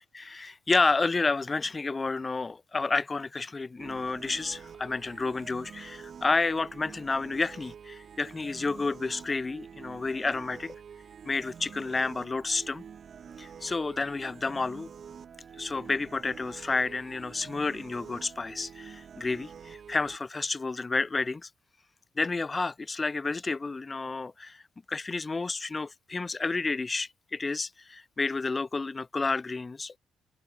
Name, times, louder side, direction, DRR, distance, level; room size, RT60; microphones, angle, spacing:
voice 1, 0.1-10.8 11.3-12.8 13.4-14.9 15.6-21.5 22.2-24.6 24.9-29.9, left 3 dB, 25° left, 2.1 m, -30 dB
sound 1, 3.8-20.2, right 7 dB, 50° right, 1.9 m, -47 dB
cardioid pair, 90°, 0 cm